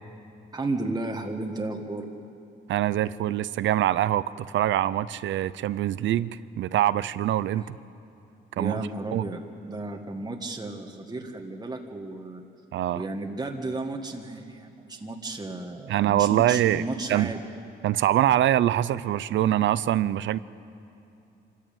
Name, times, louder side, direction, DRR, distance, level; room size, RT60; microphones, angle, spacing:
voice 1, 0.5-2.1 7.5-7.6 8.6-12.4 12.9-17.4, right 2 dB, 20° right, 2 dB, 1.7 m, -33 dB
voice 2, 2.7-6.3 6.6-7.8 8.6-8.8 9.1-9.2 12.7-13.0 15.9-16.8 17.1-17.3 17.8-20.4, right 12 dB, 70° right, 17 dB, 0.6 m, -24 dB
25.0 x 14.0 x 9.1 m, 2.8 s
cardioid pair, 90°, 20 cm